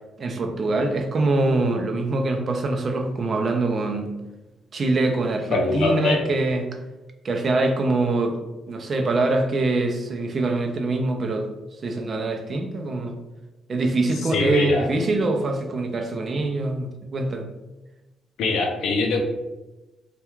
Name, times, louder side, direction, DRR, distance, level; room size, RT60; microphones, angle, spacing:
voice 1, 0.2-4.1 4.7-6.7 7.2-8.4 8.7-11.5 11.8-13.1 13.7-17.5, right 2 dB, 45° right, 4 dB, 0.4 m, -24 dB
voice 2, 5.5-6.2 14.3-14.9 18.4-19.2, left 3 dB, 75° left, 2 dB, 0.5 m, -22 dB
2.3 x 2.2 x 3.0 m, 1.1 s
cardioid pair, 90°, 0 cm